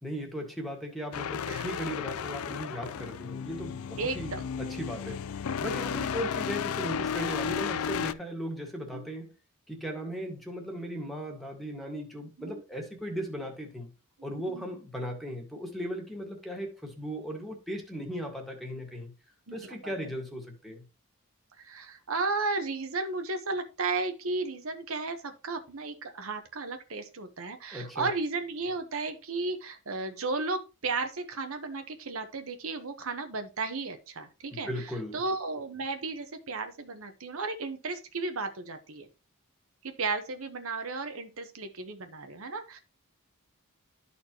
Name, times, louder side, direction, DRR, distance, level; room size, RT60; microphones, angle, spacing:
voice 1, 0.0-4.3 4.6-9.3 9.7-13.9 14.2-19.1 19.5-20.8 27.7-28.1 34.5-35.2, equal, ahead, 1.8 m, -37 dB
sound 1, 1.1-8.1, left 7 dB, 80° left, 0.4 m, -33 dB
voice 2, 4.0-4.5 5.7-6.0 8.9-9.1 12.4-12.6 14.5-14.7 18.0-18.3 19.5-19.9 21.6-39.1 39.8-42.8, right 3 dB, 70° right, 1.0 m, -34 dB
12.5 x 4.3 x 2.9 m
head